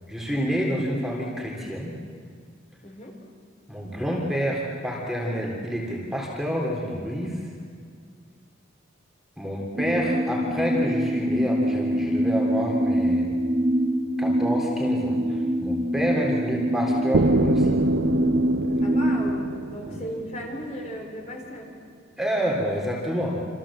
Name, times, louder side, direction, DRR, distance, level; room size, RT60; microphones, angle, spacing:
voice 1, 0.1-1.9 3.7-7.4 9.4-13.3 14.2-17.8 19.9-20.0 22.2-23.4, equal, ahead, -2 dB, 3.4 m, -28 dB
voice 2, 2.8-3.1 9.7-9.8 10.1-10.2 18.8-21.7, equal, 35° left, 1 dB, 4.3 m, -36 dB
sound 1, 9.8-19.4, equal, 35° right, 1.7 m, -24 dB
sound 2, 17.1-21.0, right 3 dB, 75° right, 0.7 m, -26 dB
28.0 x 26.5 x 7.4 m, 2.1 s
head